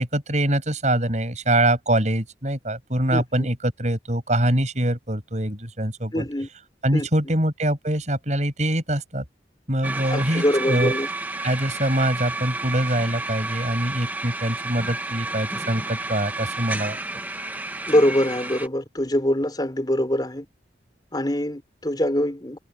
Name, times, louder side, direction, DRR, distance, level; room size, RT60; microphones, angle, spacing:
voice 1, 0.0-6.2 6.8-9.2 9.7-10.9 11.4-17.0, right 1 dB, 40° right, 7.2 m, -24 dB
voice 2, 6.1-6.5 6.9-7.1 10.1-11.1 17.9-20.4 21.1-22.6, equal, 25° left, 4.7 m, -23 dB
sound 1, 9.8-18.7, right 2 dB, 10° right, 1.2 m, -31 dB
head